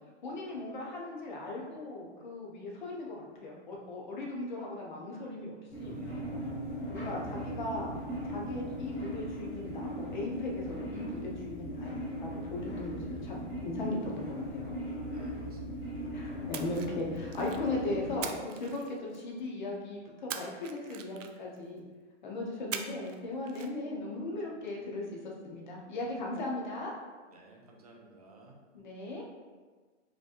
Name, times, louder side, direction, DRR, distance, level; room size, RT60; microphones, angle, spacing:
voice 1, 0.2-3.2 3.4-5.5 5.8-6.0 6.9-7.9 8.3-14.7 16.1-21.8 22.2-26.9 28.7-29.2, left 2 dB, 40° left, -2 dB, 0.8 m, -38 dB
sound 1, 5.7-18.2, equal, 10° left, 1.0 m, -38 dB
voice 2, 6.0-6.7 15.1-15.8 27.3-28.6, right 2 dB, 35° right, 0 dB, 0.4 m, -56 dB
Splash splatter, 16.5-17.7 18.2-19.4 20.3-21.6 22.7-23.2 23.5-23.7, right 8 dB, 80° right, 0.5 m, -41 dB
5.0 x 3.0 x 2.5 m, 1.4 s
hypercardioid pair, 170°, 37 cm